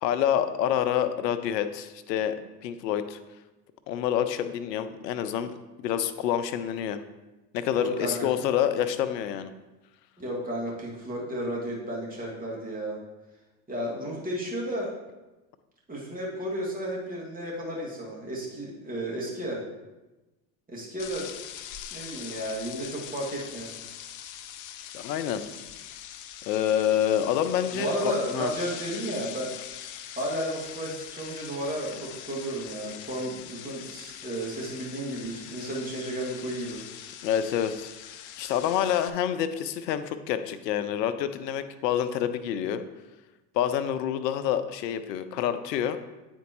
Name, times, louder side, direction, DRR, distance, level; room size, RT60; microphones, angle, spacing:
voice 1, 0.0-3.2 3.9-7.0 7.5-9.5 24.9-25.4 26.5-28.5 37.2-37.9 38.4-42.8 43.5-46.0, left 10 dB, 80° left, 11 dB, 0.7 m, -27 dB
voice 2, 7.7-8.3 10.2-13.0 13.7-14.9 15.9-19.6 20.7-21.3 21.9-23.7 27.7-29.6 30.2-36.8, right 1 dB, 15° right, -4 dB, 2.1 m, -33 dB
sound 1, 21.0-39.1, left 10 dB, 40° left, 0.5 m, -42 dB
9.3 x 4.4 x 3.0 m, 1.1 s
hypercardioid pair, 85°, 49 cm